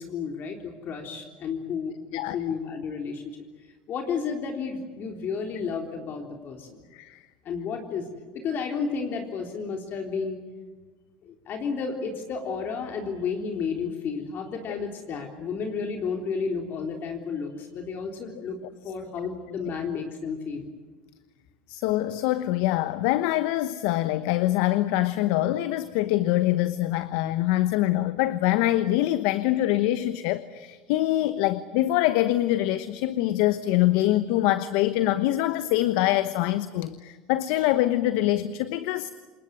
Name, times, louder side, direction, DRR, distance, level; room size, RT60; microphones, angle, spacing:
voice 1, 0.0-3.4 3.9-6.9 7.5-8.1 8.3-10.4 11.2-18.6 18.8-20.7, left 5 dB, 50° left, 3 dB, 3.6 m, -32 dB
voice 2, 21.7-39.1, left 15 dB, 70° left, 13 dB, 1.0 m, -24 dB
28.0 x 20.5 x 9.5 m, 1.4 s
supercardioid pair, 90°, 4 cm